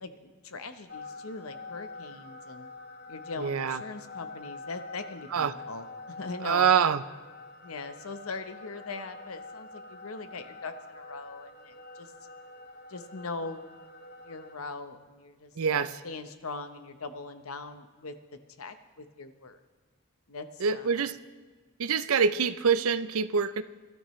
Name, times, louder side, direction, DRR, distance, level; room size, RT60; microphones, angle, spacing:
voice 1, 0.0-2.7 3.1-6.7 7.6-12.1 12.9-13.7 14.2-18.1 18.6-19.6 20.3-20.9, left 3 dB, 85° left, 9 dB, 1.0 m, -41 dB
sound 1, 0.9-14.5, left 3 dB, 45° left, 1.1 m, -46 dB
voice 2, 3.4-3.8 5.3-5.5 6.4-7.0 15.6-16.0 20.6-21.2 21.8-23.6, right 6 dB, 85° right, 14 dB, 0.6 m, -25 dB
22.5 x 12.5 x 3.2 m, 1.3 s
head